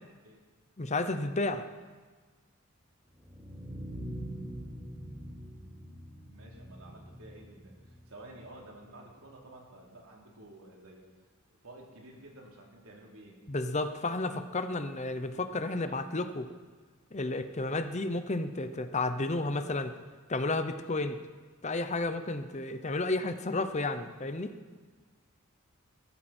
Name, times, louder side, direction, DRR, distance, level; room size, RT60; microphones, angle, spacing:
voice 1, 0.8-1.7 13.5-16.5 17.1-19.9 20.3-21.2 21.6-24.5, left 2 dB, 30° left, 9 dB, 0.8 m, -32 dB
sound 1, 3.1-9.1, equal, 30° right, 6.3 m, -44 dB
voice 2, 6.3-11.1 11.5-13.4 15.7-15.9, right 1 dB, 75° right, -1 dB, 3.5 m, -51 dB
23.0 x 13.5 x 4.4 m, 1.4 s
head